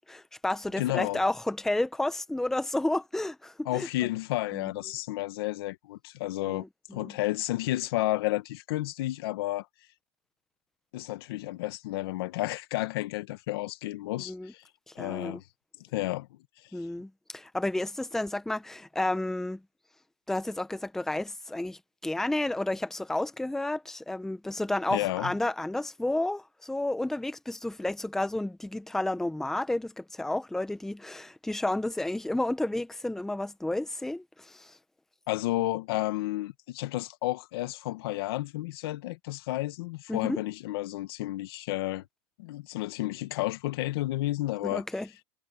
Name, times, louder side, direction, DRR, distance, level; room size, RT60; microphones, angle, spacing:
voice 1, 0.1-3.9 4.5-4.6 6.4-7.1 14.3-14.5 14.9-15.4 16.7-19.6 20.3-34.8 40.1-40.4 44.6-45.1, left 1 dB, 5° left, 0.9 m, -31 dB
voice 2, 0.8-1.2 3.6-6.6 6.9-9.6 10.9-14.6 14.9-15.4 15.9-16.3 24.9-25.3 35.3-42.0 42.4-44.8, left 17 dB, 75° left, 1.5 m, -31 dB
supercardioid pair, 140°, 13 cm